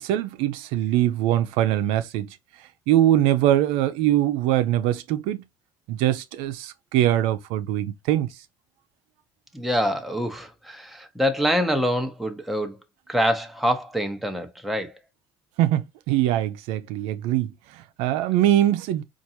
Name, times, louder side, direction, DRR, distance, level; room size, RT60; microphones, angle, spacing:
voice 1, 0.0-2.4 2.9-5.4 5.9-8.3 15.6-19.0, right 12 dB, 85° right, 0.6 m, -22 dB
voice 2, 9.5-12.8 13.1-15.0, equal, ahead, 0.8 m, -25 dB
4.5 x 2.6 x 2.7 m
cardioid pair, 115°, 9 cm